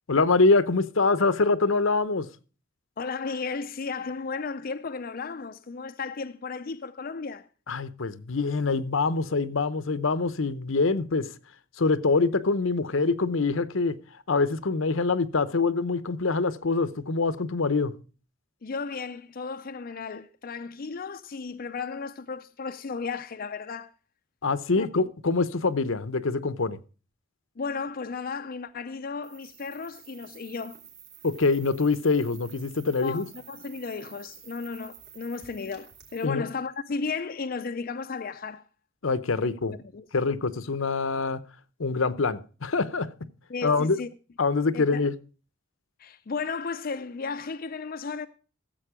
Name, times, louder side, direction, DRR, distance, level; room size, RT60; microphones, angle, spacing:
voice 1, 0.1-2.3 7.7-11.3 11.8-14.0 14.3-17.9 24.4-26.8 31.2-33.3 36.2-36.4 39.0-39.7 40.1-41.4 41.8-43.1 43.6-44.0 44.4-45.1, left 3 dB, 80° left, 0.9 m, -25 dB
voice 2, 3.0-7.5 18.6-23.9 24.8-24.9 27.6-30.8 32.9-38.6 39.7-40.3 43.5-44.1 44.7-45.0 46.0-48.3, left 4 dB, 45° left, 0.5 m, -34 dB
sound 1, 29.2-36.2, right 8 dB, 55° right, 3.2 m, -50 dB
15.0 x 7.7 x 5.0 m
head